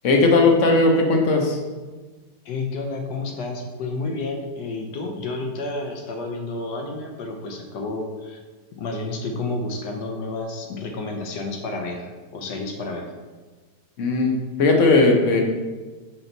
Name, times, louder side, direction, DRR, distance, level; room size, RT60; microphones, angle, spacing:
voice 1, 0.0-1.6 14.0-15.4, left 3 dB, 55° left, 2 dB, 1.0 m, -17 dB
voice 2, 2.4-8.4 8.8-13.1, left 3 dB, 80° left, 2 dB, 1.3 m, -30 dB
5.6 x 4.3 x 3.9 m, 1.3 s
omnidirectional pair, 1.8 m